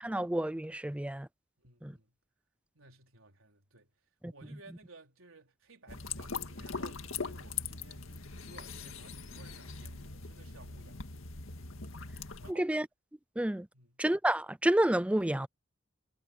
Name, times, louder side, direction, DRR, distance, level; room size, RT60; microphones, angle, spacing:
voice 1, 0.0-1.3 1.8-1.9 4.2-4.3 12.5-12.9 13.4-13.7 14.0-15.5, right 1 dB, 5° right, 0.4 m, -29 dB
voice 2, 1.6-2.2 2.7-3.9 4.3-11.0 12.4-12.7 13.7-14.0, right 3 dB, 80° right, 4.3 m, -57 dB
sound 1, 5.9-12.5, left 5 dB, 75° left, 2.0 m, -41 dB
head